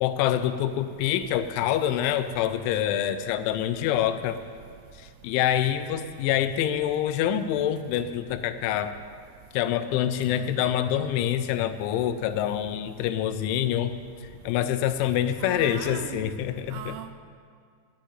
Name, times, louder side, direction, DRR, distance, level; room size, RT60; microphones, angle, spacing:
voice 1, 0.0-4.4 5.0-9.0 9.5-14.0 14.4-17.0, left 11 dB, 85° left, 11 dB, 3.0 m, -26 dB
voice 2, 15.4-16.2 16.7-17.1, right 9 dB, 80° right, 7 dB, 2.6 m, -38 dB
9.9 x 8.9 x 8.9 m, 2.1 s
omnidirectional pair, 5.3 m